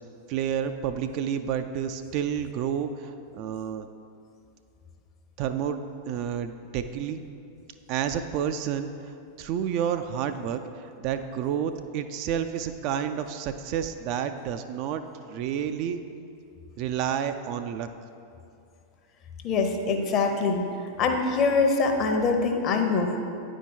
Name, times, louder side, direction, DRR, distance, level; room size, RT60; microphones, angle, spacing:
voice 1, 0.3-3.9 5.4-7.2 7.9-16.0 16.8-17.9, right 8 dB, 45° right, 8 dB, 0.3 m, -30 dB
voice 2, 19.4-20.7 21.0-23.2, left 4 dB, 35° left, 4 dB, 0.8 m, -24 dB
9.4 x 4.5 x 4.4 m, 2.5 s
figure-of-eight pair, 90°, 0 cm